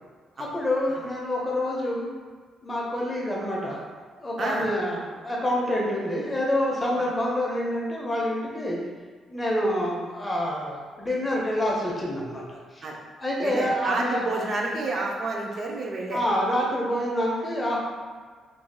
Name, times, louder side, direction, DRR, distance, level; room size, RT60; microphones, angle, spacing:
voice 1, 0.4-2.1 2.6-3.8 4.2-8.8 9.3-12.8 13.2-14.4 16.1-17.8, left 1 dB, 25° left, -3 dB, 0.7 m, -27 dB
voice 2, 13.4-16.2, right 2 dB, 55° right, -1 dB, 0.5 m, -29 dB
2.9 x 2.6 x 2.2 m, 1.5 s
supercardioid pair, 65°, 0 cm